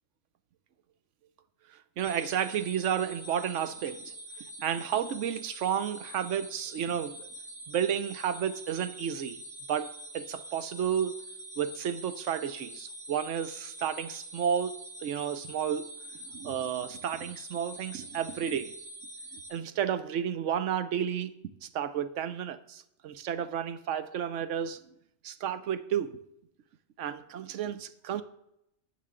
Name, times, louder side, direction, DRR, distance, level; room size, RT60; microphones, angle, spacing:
sound 1, 2.0-19.5, right 1 dB, 10° right, 4.5 m, -45 dB
voice 1, 2.0-7.3 7.7-9.4 9.7-11.2 11.6-15.9 16.3-18.7 19.5-21.3 21.6-24.8 25.2-26.2 27.0-28.2, right 9 dB, 80° right, 1.0 m, -32 dB
12.5 x 8.0 x 3.7 m
omnidirectional pair, 1.2 m